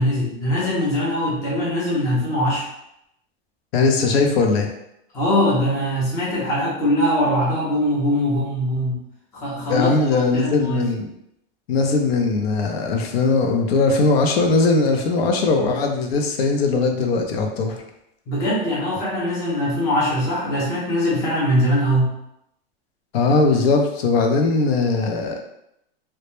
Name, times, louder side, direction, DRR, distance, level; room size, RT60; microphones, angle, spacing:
voice 1, 0.0-2.7 5.1-9.0 9.3-10.9 18.3-22.1, equal, 10° left, -7 dB, 0.4 m, -22 dB
voice 2, 3.7-4.7 9.7-11.1 11.7-17.8 23.1-25.4, left 3 dB, 80° left, 3 dB, 0.5 m, -19 dB
2.1 x 2.0 x 2.9 m, 0.80 s
supercardioid pair, 165°, 30 cm